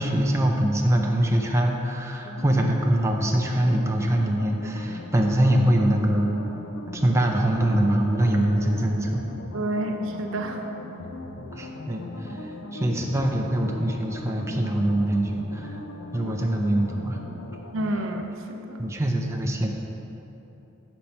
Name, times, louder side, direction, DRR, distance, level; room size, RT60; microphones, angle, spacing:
voice 1, 0.0-6.3 6.9-9.2 11.5-15.8 16.1-17.2 18.8-19.7, right 1 dB, 15° right, 1 dB, 0.5 m, -23 dB
sound 1, 2.2-18.2, left 1 dB, 65° left, 0.5 m, -39 dB
voice 2, 9.5-10.6 17.7-18.8, right 1 dB, 70° right, 3 dB, 0.6 m, -29 dB
7.1 x 5.3 x 4.3 m, 3.0 s
head